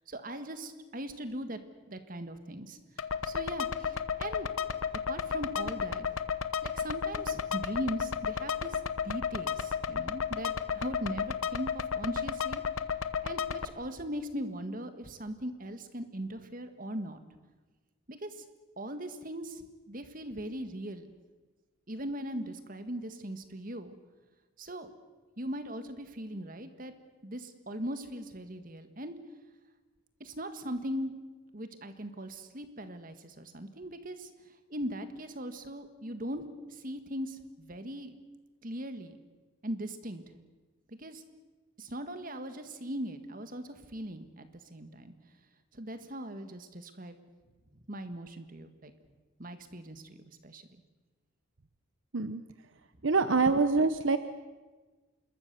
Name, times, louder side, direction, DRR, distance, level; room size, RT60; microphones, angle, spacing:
voice 1, 0.0-1.6 1.9-4.5 5.1-6.0 6.6-12.6 13.2-17.2 18.1-18.4 18.8-21.1 21.9-23.9 24.6-24.9 25.4-26.9 27.2-29.2 30.2-31.1 31.5-34.3 34.7-38.2 38.6-39.2 39.6-40.2 40.9-41.2 41.8-45.1 45.7-47.2 47.9-48.9 49.4-50.2 50.4-50.6, right 1 dB, 40° right, 9 dB, 1.8 m, -39 dB
sound 1, 3.0-13.7, left 7 dB, 90° left, 1.1 m, -33 dB
voice 2, 53.0-54.2, right 4 dB, 70° right, 11 dB, 0.9 m, -25 dB
26.5 x 21.5 x 6.9 m, 1.3 s
head